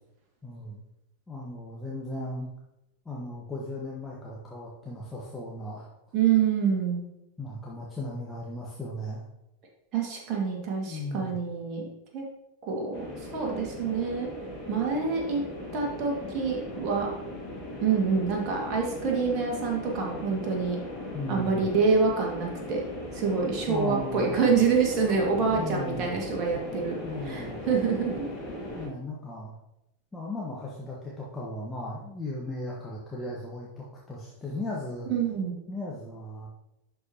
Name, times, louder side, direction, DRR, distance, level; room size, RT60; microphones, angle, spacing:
voice 1, 0.4-0.8 1.3-2.5 3.0-5.9 7.4-9.2 10.9-11.3 21.1-21.6 23.7-24.6 25.5-26.2 27.0-27.6 28.7-29.5 30.1-35.1 35.7-36.5, left 1 dB, 10° left, -5 dB, 1.2 m, -36 dB
voice 2, 6.1-7.0 9.9-11.8 12.1-12.2 12.6-14.3 14.7-15.4 15.7-17.1 17.8-20.8 21.3-22.8 23.1-28.3 35.1-35.5, right 5 dB, 35° right, 0 dB, 1.9 m, -26 dB
sound 1, 12.9-28.9, left 1 dB, 40° left, 1.6 m, -38 dB
11.0 x 4.7 x 2.9 m, 0.89 s
figure-of-eight pair, 90°, 0 cm